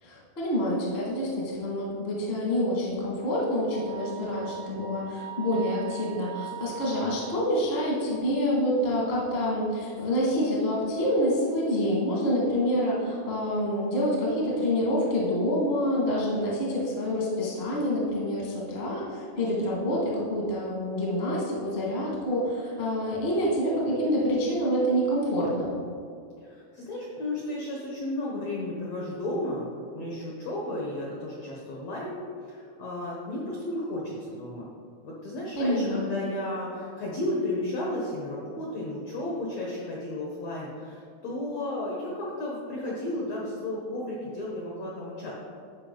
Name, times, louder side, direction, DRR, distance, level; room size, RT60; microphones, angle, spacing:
voice 1, 0.0-25.7 35.6-36.2, equal, 50° left, -4 dB, 0.7 m, -27 dB
Wind instrument woodwind instrument, 3.7-7.6, right 10 dB, 75° right, 2.1 m, -41 dB
voice 2, 26.4-29.7 29.9-32.2 32.4-34.7 35.0-45.3, left 1 dB, 80° left, -3 dB, 1.5 m, -33 dB
12.5 x 5.0 x 3.8 m, 2.3 s
omnidirectional pair, 4.6 m